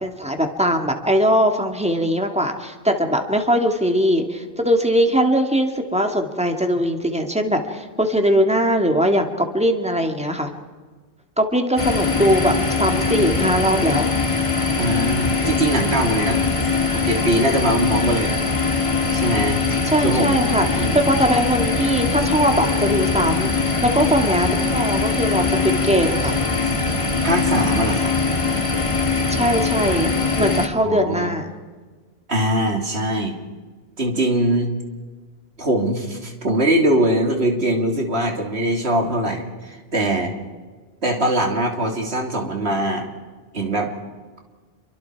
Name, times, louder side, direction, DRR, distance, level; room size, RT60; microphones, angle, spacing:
voice 1, 0.0-10.5 11.4-14.1 19.8-23.5 23.8-26.4 29.3-30.1 30.4-31.5, equal, 5° right, 4 dB, 2.2 m, -20 dB
sound 1, 11.8-30.7, left 4 dB, 30° left, 1.6 m, -21 dB
voice 2, 14.8-16.5 16.9-18.3 19.1-19.6 20.0-20.3 20.7-21.2 27.2-28.1 30.8-31.3 32.3-33.3 34.0-34.7 35.6-40.3 41.0-43.1 43.5-43.9, right 1 dB, 75° right, 2 dB, 3.2 m, -22 dB
28.0 x 24.0 x 4.8 m, 1.4 s
omnidirectional pair, 1.1 m